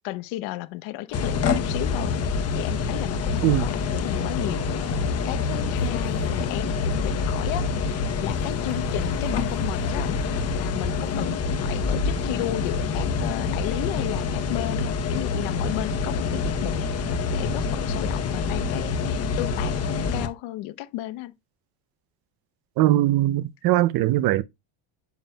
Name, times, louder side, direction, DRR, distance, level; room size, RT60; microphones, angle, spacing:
voice 1, 0.0-2.1 2.5-16.8 17.3-19.8 20.1-21.3, left 15 dB, 75° left, 0.9 m, -34 dB
sound 1, 1.1-20.3, left 4 dB, 30° left, 0.9 m, -26 dB
sound 2, 3.4-11.5, left 9 dB, 55° left, 2.1 m, -42 dB
voice 2, 22.8-24.4, right 15 dB, 50° right, 0.5 m, -20 dB
9.4 x 6.0 x 2.2 m
cardioid pair, 150°, 48 cm